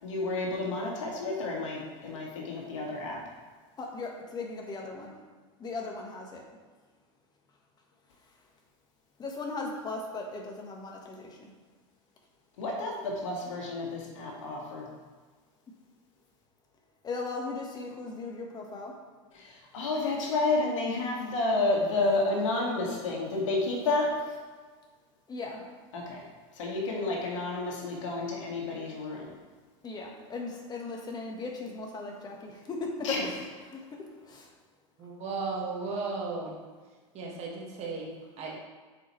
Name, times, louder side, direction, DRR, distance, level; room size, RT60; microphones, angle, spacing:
voice 1, 0.0-3.2 12.6-14.9 19.3-24.1 25.9-26.2 26.5-29.3 33.0-33.3, left 2 dB, 80° left, -1 dB, 1.8 m, -30 dB
voice 2, 3.8-5.2 5.6-6.4 9.2-11.5 17.0-19.0 25.3-25.7 29.8-33.4 33.6-34.5, left 3 dB, 25° left, 1 dB, 1.4 m, -38 dB
voice 3, 35.0-36.6 37.1-38.5, right 4 dB, 40° right, -2 dB, 1.7 m, -35 dB
7.7 x 4.9 x 3.1 m, 1.4 s
hypercardioid pair, 110°, 16 cm